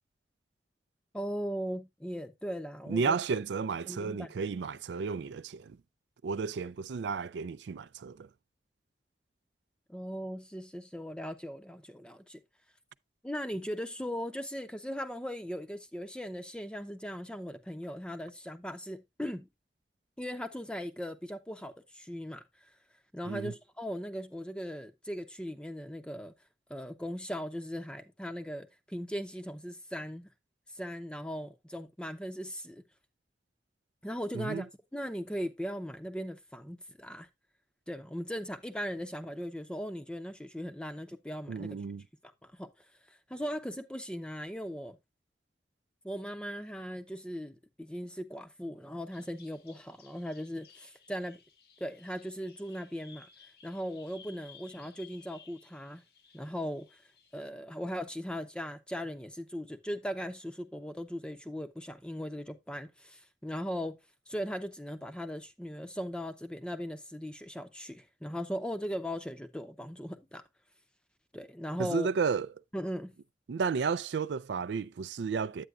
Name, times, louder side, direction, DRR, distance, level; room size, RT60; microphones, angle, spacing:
voice 1, 1.1-3.2 3.9-4.3 9.9-12.4 13.2-19.5 20.2-22.4 23.1-26.3 26.7-30.3 30.7-32.8 34.0-37.3 37.9-41.8 42.2-42.7 43.1-45.0 46.0-51.4 51.8-53.3 53.6-56.0 56.3-56.9 57.3-64.0 64.3-70.4 71.3-72.1 72.7-73.1, equal, 5° left, 0.6 m, -38 dB
voice 2, 2.9-5.8 6.2-8.3 23.3-23.5 34.3-34.6 41.5-42.0 71.8-72.5 73.5-75.7, right 5 dB, 85° right, 0.4 m, -32 dB
Bird vocalization bird call bird song, 49.1-57.5, left 6 dB, 60° left, 1.1 m, -58 dB
9.3 x 8.7 x 2.4 m
head